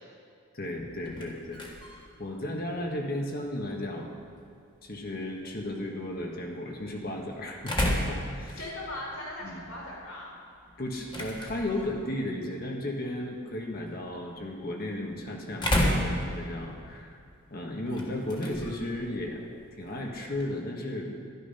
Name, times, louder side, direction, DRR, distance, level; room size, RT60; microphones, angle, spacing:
voice 1, 0.5-1.6 2.2-4.1 4.8-8.6 9.4-9.6 10.8-17.2 17.5-19.4 19.8-21.2, left 1 dB, 40° left, 0 dB, 1.5 m, -34 dB
sound 1, 0.8-20.6, left 1 dB, 20° left, 1.5 m, -36 dB
voice 2, 8.6-10.4, left 1 dB, 65° left, -4 dB, 4.1 m, -39 dB
12.5 x 12.5 x 5.6 m, 2.3 s
head